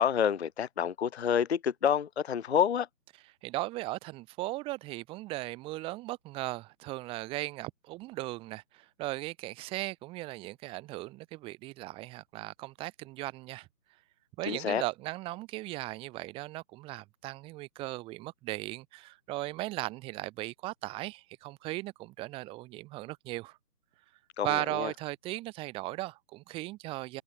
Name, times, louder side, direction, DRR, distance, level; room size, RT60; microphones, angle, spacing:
voice 1, 0.0-2.9 14.5-14.8 24.4-24.9, left 8 dB, 45° left, 0.6 m, -28 dB
voice 2, 3.4-13.7 14.4-23.6 24.4-27.2, right 19 dB, 10° right, 1.8 m, -37 dB
figure-of-eight pair, 145°, 47 cm